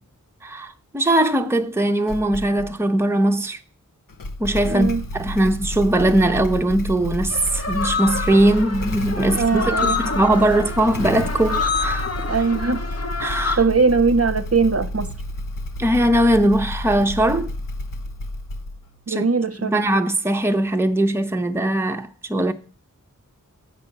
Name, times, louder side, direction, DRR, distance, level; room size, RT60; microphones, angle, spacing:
voice 1, 0.4-3.6 4.4-12.1 13.2-13.6 15.8-17.5 19.1-19.2 19.6-22.5, right 1 dB, 10° right, 0.7 m, -20 dB
Motorcycle / Engine starting, 2.1-2.7 4.1-19.0, left 1 dB, 80° left, 0.8 m, -30 dB
voice 2, 4.7-5.0 9.3-10.0 12.3-12.8 13.6-15.1 19.1-19.7, right 4 dB, 45° right, 0.7 m, -20 dB
sound 1, 7.3-13.6, left 4 dB, 50° left, 1.0 m, -27 dB
7.3 x 5.2 x 7.1 m
wide cardioid pair, 60°, 32 cm